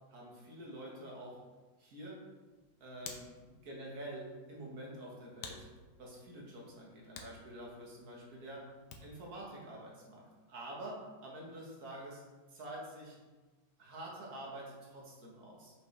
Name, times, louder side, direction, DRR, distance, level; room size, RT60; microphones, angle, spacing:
voice 1, 0.1-1.4 1.8-2.2 2.8-5.7 6.0-8.7 9.0-10.2 10.5-12.2 12.5-13.2 13.8-15.7, right 1 dB, 50° right, -3 dB, 1.9 m, -47 dB
Hands, 2.4-9.3, left 5 dB, 65° left, 1.2 m, -54 dB
5.8 x 5.4 x 3.3 m, 1.3 s
omnidirectional pair, 2.2 m